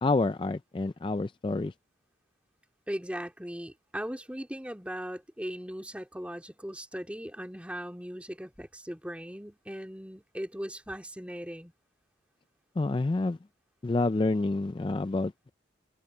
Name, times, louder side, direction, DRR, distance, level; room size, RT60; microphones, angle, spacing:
voice 1, 0.0-1.7 12.8-13.4 13.8-15.5, left 2 dB, 25° left, 0.3 m, -28 dB
voice 2, 2.9-11.7, equal, 5° right, 2.4 m, -38 dB
head